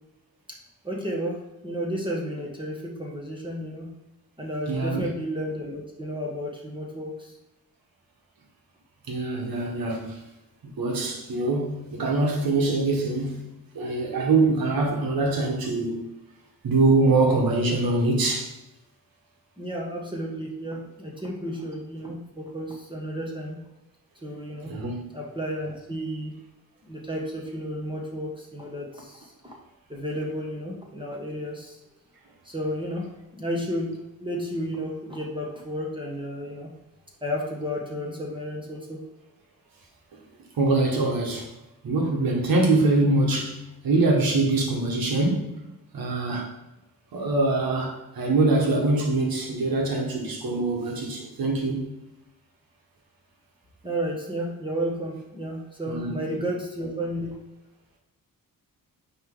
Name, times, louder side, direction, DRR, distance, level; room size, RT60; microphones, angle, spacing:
voice 1, 0.8-3.9 4.4-7.3 19.6-23.6 24.2-24.8 25.1-26.4 26.8-29.5 29.9-31.8 32.4-36.7 37.2-39.0 53.8-57.4, equal, 15° right, -2 dB, 1.4 m, -32 dB
voice 2, 4.7-5.1 9.1-10.2 10.6-13.4 13.7-16.1 16.6-18.5 24.6-25.0 40.6-41.5 41.8-45.6 45.9-46.5 47.1-51.9 55.9-56.1, right 2 dB, 85° right, 1 dB, 1.6 m, -24 dB
9.3 x 3.4 x 3.9 m, 0.93 s
cardioid pair, 90°, 35 cm